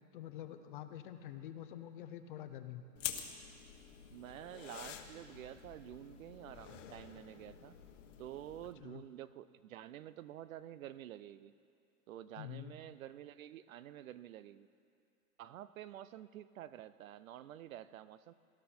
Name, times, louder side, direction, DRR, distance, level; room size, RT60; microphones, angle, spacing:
voice 1, 0.1-2.8 8.8-9.0 12.4-12.8, left 11 dB, 35° left, 9 dB, 0.6 m, -47 dB
sound 1, 3.0-8.7, left 10 dB, 55° left, 1.3 m, -48 dB
voice 2, 4.1-7.8 8.2-11.5 12.1-14.7 15.4-18.3, right 12 dB, 65° right, 16 dB, 0.6 m, -49 dB
18.0 x 13.0 x 4.3 m, 2.4 s
hypercardioid pair, 150°, 45 cm